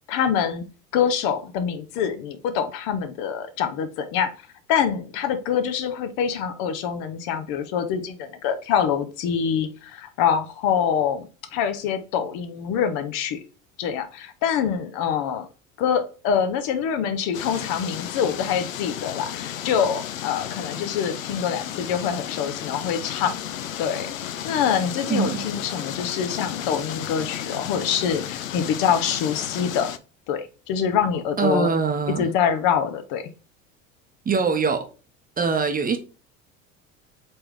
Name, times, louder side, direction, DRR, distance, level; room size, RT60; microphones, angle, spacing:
voice 1, 0.1-0.6 0.9-4.3 4.7-13.4 13.8-15.5 15.8-23.3 23.8-24.1 24.4-29.9 30.3-31.7 32.2-33.2, left 8 dB, 55° left, 0.8 m, -25 dB
sound 1, 17.3-30.0, left 10 dB, 85° left, 0.5 m, -33 dB
voice 2, 31.4-32.3 34.2-34.9 35.4-36.0, right 5 dB, 20° right, 0.8 m, -23 dB
4.3 x 3.3 x 3.4 m
hypercardioid pair, 70°, 40 cm